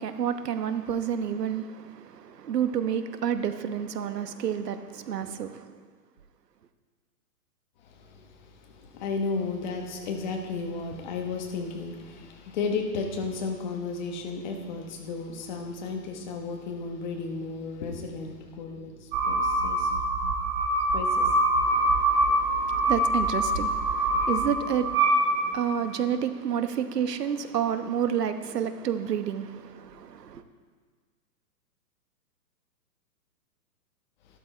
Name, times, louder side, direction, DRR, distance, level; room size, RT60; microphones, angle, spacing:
voice 1, 0.0-5.7 21.6-30.4, right 8 dB, 75° right, 1.2 m, -30 dB
voice 2, 8.0-8.3 8.7-19.9 20.9-21.3, left 4 dB, 30° left, 1.2 m, -33 dB
sound 1, 19.1-25.9, right 1 dB, 30° right, 4.0 m, -25 dB
12.5 x 12.5 x 4.4 m
hypercardioid pair, 165°, 49 cm